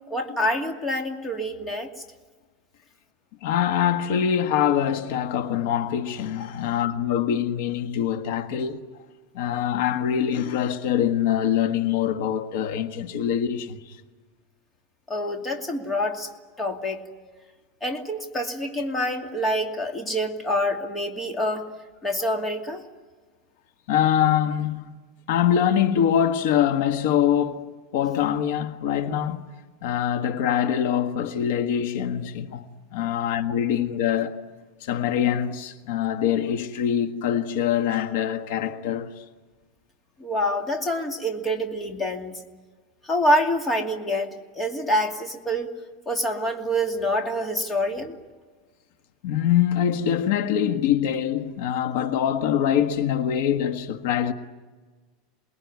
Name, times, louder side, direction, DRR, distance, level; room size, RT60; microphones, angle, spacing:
voice 1, 0.1-1.9 15.1-16.3 16.6-17.0 17.8-21.7 22.0-22.8 40.2-42.4 43.0-45.7 46.1-48.1, equal, 15° left, 2.5 m, -26 dB
voice 2, 3.4-8.8 9.3-14.0 23.9-24.9 25.3-27.7 27.9-29.4 29.8-32.6 32.9-34.4 34.8-39.2 49.2-54.3, left 9 dB, 65° left, 1.6 m, -24 dB
28.0 x 21.0 x 9.6 m
supercardioid pair, 160°, 0 cm